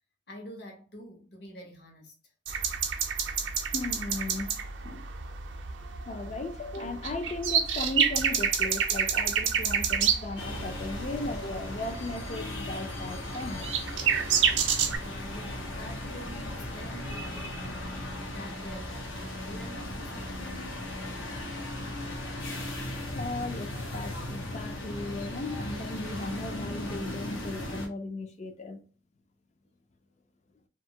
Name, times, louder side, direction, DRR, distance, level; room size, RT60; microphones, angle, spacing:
voice 1, 0.3-2.1 15.0-20.9, equal, 55° left, 0.8 m, -46 dB
sound 1, 2.5-15.0, right 7 dB, 70° right, 0.5 m, -29 dB
voice 2, 3.7-4.5 4.8-5.3 6.1-13.7 22.9-28.8, left 2 dB, 35° left, 0.4 m, -36 dB
sound 2, 10.4-27.9, left 1 dB, 85° left, 0.8 m, -37 dB
2.7 x 2.3 x 2.7 m
head